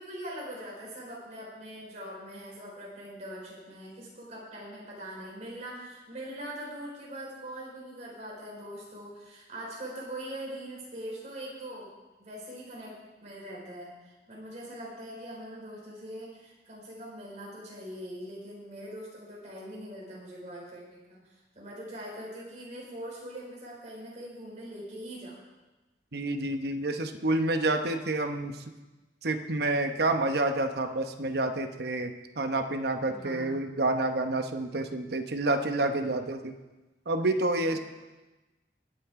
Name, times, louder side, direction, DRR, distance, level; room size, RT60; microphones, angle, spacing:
voice 1, 0.0-11.9 12.2-25.4 33.1-33.6 37.7-37.8, right 1 dB, 40° right, -4 dB, 4.7 m, -42 dB
voice 2, 26.1-28.6 29.2-36.5 37.1-37.8, right 2 dB, 60° right, 6 dB, 1.0 m, -28 dB
21.0 x 9.0 x 3.7 m, 1.1 s
head